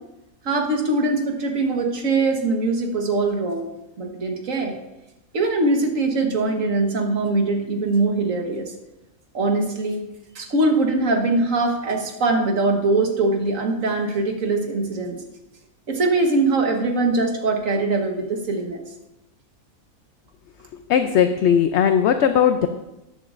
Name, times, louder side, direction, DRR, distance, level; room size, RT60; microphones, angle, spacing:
voice 1, 0.4-3.7 4.0-4.8 5.3-8.7 9.3-10.0 10.3-15.2 15.9-18.8, right 2 dB, 65° right, 2 dB, 1.7 m, -22 dB
voice 2, 20.9-22.7, left 8 dB, 65° left, 8 dB, 0.7 m, -18 dB
13.0 x 10.5 x 2.5 m, 0.95 s
omnidirectional pair, 1.5 m